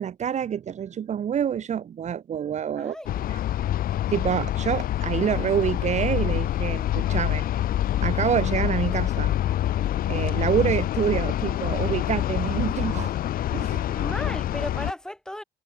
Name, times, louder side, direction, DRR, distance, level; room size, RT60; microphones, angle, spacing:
voice 1, 0.0-3.0 3.3-3.4 4.1-7.5 8.0-9.3 10.1-13.1 13.5-14.0, right 8 dB, 45° right, 1.2 m, -27 dB
voice 2, 2.8-3.4 13.9-15.4, left 1 dB, 5° left, 3.6 m, -35 dB
sound 1, 3.1-14.9, left 12 dB, 60° left, 1.0 m, -26 dB
cardioid pair, 110°, 17 cm